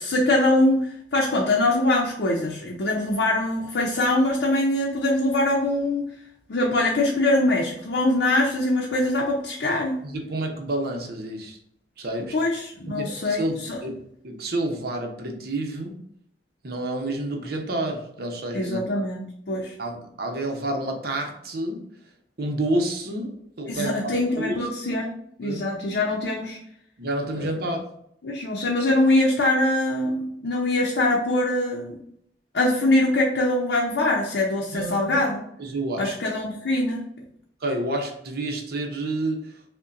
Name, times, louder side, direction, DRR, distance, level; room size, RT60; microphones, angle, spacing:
voice 1, 0.0-6.1 6.5-10.0 12.3-13.8 18.5-19.7 23.7-25.1 25.4-26.6 27.3-27.5 28.2-32.0 32.5-35.4 36.0-37.0, left 1 dB, 70° left, -2 dB, 0.6 m, -23 dB
voice 2, 10.0-11.6 12.0-12.4 12.9-14.0 14.2-16.0 16.6-18.8 19.8-21.8 22.4-24.7 25.4-25.7 27.0-27.9 34.7-35.2 35.6-36.1 37.6-39.5, right 1 dB, 60° right, 2 dB, 0.7 m, -29 dB
5.3 x 2.2 x 2.5 m, 0.71 s
head